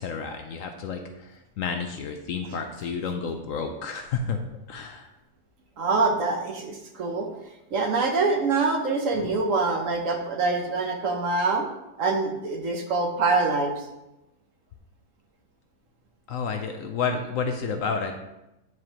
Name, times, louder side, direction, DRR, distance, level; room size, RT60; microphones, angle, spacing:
voice 1, 0.0-4.4 4.7-5.1 9.1-9.3 16.3-18.1, left 5 dB, 70° left, 5 dB, 0.9 m, -30 dB
voice 2, 5.8-7.3 7.7-11.7 12.0-13.9, right 3 dB, 60° right, 3 dB, 1.1 m, -25 dB
9.4 x 4.7 x 2.9 m, 0.92 s
omnidirectional pair, 1.7 m